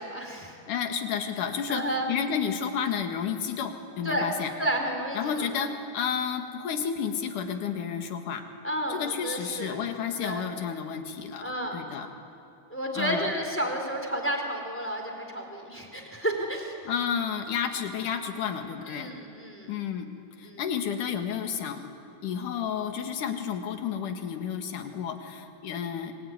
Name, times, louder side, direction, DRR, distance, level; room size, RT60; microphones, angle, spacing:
voice 1, 0.0-0.6 1.7-2.1 4.0-4.3 4.6-5.6 8.6-9.8 10.2-10.5 11.4-11.8 12.7-16.9 18.9-19.7 20.4-20.6, right 1 dB, 5° left, 3 dB, 3.5 m, -31 dB
voice 2, 0.7-4.5 5.1-8.4 8.9-12.1 12.9-13.3 16.8-19.1 19.6-20.1 20.4-21.9 22.2-26.1, left 7 dB, 75° left, 6 dB, 3.3 m, -31 dB
27.5 x 22.5 x 9.5 m, 2.6 s
omnidirectional pair, 3.6 m